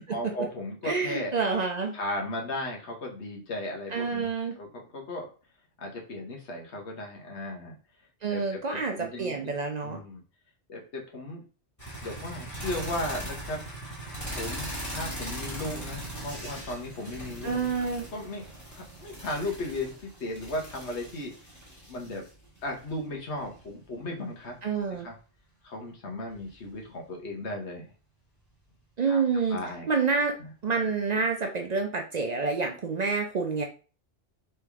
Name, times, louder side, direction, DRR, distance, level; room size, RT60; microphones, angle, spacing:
voice 1, 0.1-1.6 1.9-4.3 4.6-5.3 5.8-7.8 8.3-9.5 9.8-10.2 10.7-11.4 12.0-13.7 14.0-17.7 18.1-21.3 21.9-22.2 22.6-24.7 25.0-25.1 25.6-27.9 29.1-29.2 29.5-29.9 30.4-30.5, left 1 dB, 85° left, 0 dB, 1.3 m, -36 dB
voice 2, 0.8-2.0 3.9-4.5 8.2-10.0 17.4-18.0 24.6-25.1 29.0-29.6 29.9-30.3 30.6-33.6, right 4 dB, 55° right, 3 dB, 0.5 m, -28 dB
sound 1, 11.8-24.7 26.3-26.9 28.6-28.7, right 1 dB, 15° left, 1.4 m, -40 dB
3.5 x 3.3 x 3.4 m, 0.36 s
omnidirectional pair, 1.1 m